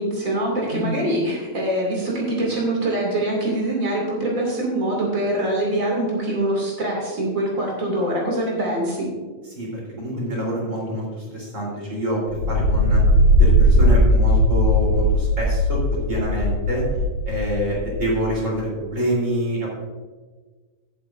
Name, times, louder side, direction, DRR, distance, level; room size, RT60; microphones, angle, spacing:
voice 1, 0.0-9.1, right 1 dB, 80° right, -3 dB, 0.7 m, -24 dB
voice 2, 9.5-12.2 12.5-13.0 13.4-16.8 17.2-19.7, equal, 20° right, -4 dB, 2.9 m, -26 dB
sound 1, 12.3-18.3, equal, 85° left, 1.6 m, -18 dB
17.0 x 8.5 x 2.6 m, 1.4 s
omnidirectional pair, 5.7 m